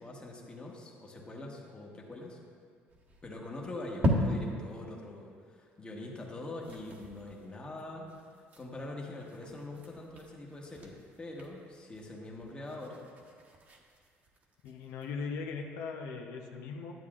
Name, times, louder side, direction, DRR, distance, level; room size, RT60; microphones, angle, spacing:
voice 1, 0.0-2.4 3.2-8.1 8.6-13.0, left 2 dB, 20° left, -1 dB, 1.1 m, -43 dB
sound 1, 2.9-4.8 5.2-5.3 5.6-5.7 6.0-6.2 6.5-15.1, equal, 40° right, 1.1 m, -38 dB
voice 2, 14.6-16.9, left 5 dB, 90° left, 2 dB, 0.7 m, -39 dB
10.5 x 8.3 x 2.4 m, 2.1 s
cardioid pair, 120°, 5 cm